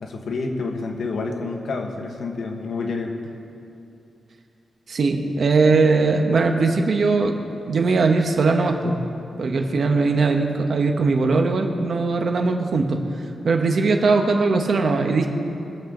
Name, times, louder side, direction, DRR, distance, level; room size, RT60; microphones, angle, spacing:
voice 1, 0.0-3.1, left 3 dB, 70° left, 2 dB, 1.6 m, -28 dB
voice 2, 4.9-7.4 7.7-9.0 9.4-13.0 13.4-15.3, right 3 dB, 60° right, 4 dB, 1.3 m, -20 dB
23.5 x 8.1 x 3.9 m, 2.7 s
wide cardioid pair, 120°, 0 cm